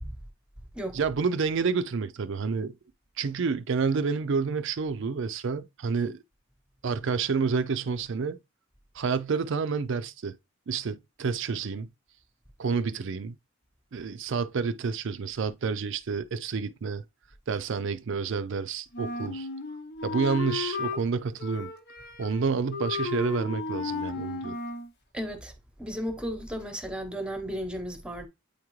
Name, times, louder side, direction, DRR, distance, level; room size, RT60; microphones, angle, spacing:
voice 1, 0.9-2.7 3.2-6.2 6.8-8.4 8.9-10.4 10.7-11.9 12.6-13.4 13.9-17.0 17.5-19.5 20.0-21.7 22.2-24.6, right 5 dB, 65° right, 0.5 m, -29 dB
Wind instrument woodwind instrument, 18.9-21.0 21.4-22.4 22.7-24.9, left 4 dB, 55° left, 0.8 m, -34 dB
voice 2, 25.1-25.5 25.8-28.3, equal, 5° right, 0.9 m, -34 dB
8.6 x 3.6 x 3.1 m
head